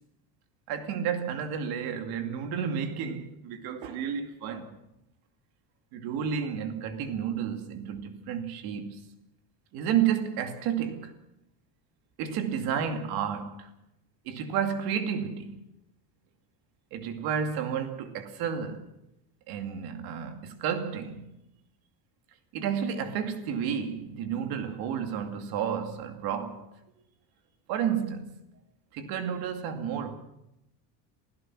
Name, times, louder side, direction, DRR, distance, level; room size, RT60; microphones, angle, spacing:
voice 1, 0.7-4.8 5.9-9.0 9.7-11.1 12.2-13.7 14.2-15.6 16.9-18.9 19.5-21.3 22.5-26.7 27.7-28.4 28.9-30.2, right 8 dB, 55° right, 2.5 m, -31 dB
27.0 x 17.0 x 6.2 m
cardioid pair, 180°, 44 cm